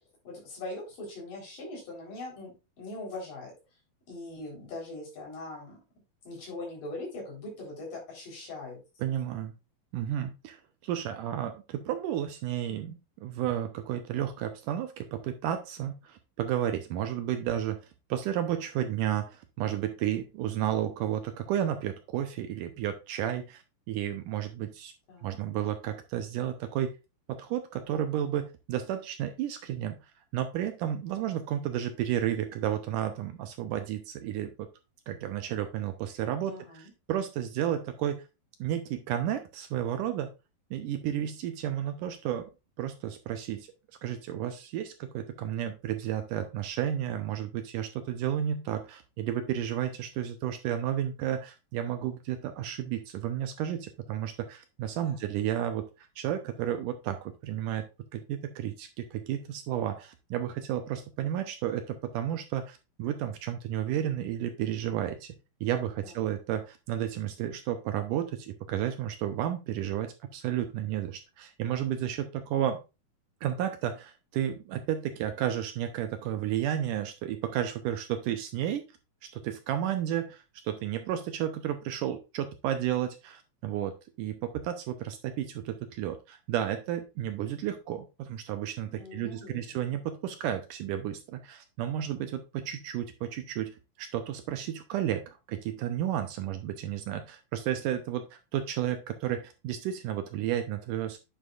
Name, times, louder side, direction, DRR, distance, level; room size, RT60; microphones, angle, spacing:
voice 1, 0.2-3.5 4.1-5.8 6.3-8.8 25.1-25.4 36.5-36.9 55.0-55.3 66.0-66.3 88.9-89.9, left 2 dB, 65° left, -2 dB, 5.5 m, -41 dB
voice 2, 9.0-9.5 9.9-17.8 18.1-23.6 23.9-24.9 25.2-26.9 27.3-30.0 30.3-34.7 35.1-38.2 38.6-40.3 40.7-42.5 42.8-43.7 44.0-57.9 58.1-65.3 65.6-72.8 73.4-78.9 79.3-101.2, right 11 dB, 75° right, 7 dB, 2.1 m, -32 dB
9.3 x 6.7 x 2.4 m, 0.27 s
omnidirectional pair, 4.1 m